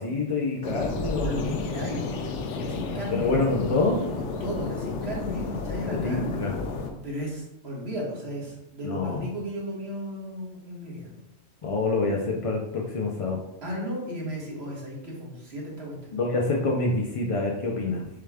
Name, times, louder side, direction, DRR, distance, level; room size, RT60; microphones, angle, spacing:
voice 1, 0.0-1.6 3.1-4.0 5.9-6.5 8.8-9.3 11.6-13.4 16.1-18.1, left 3 dB, 50° left, -1 dB, 0.4 m, -26 dB
sound 1, 0.6-6.9, left 4 dB, 75° left, 0.9 m, -32 dB
voice 2, 1.1-3.3 4.2-6.5 7.0-11.1 13.6-16.1, equal, 60° right, -4 dB, 1.6 m, -35 dB
6.6 x 2.3 x 3.4 m, 0.88 s
omnidirectional pair, 1.2 m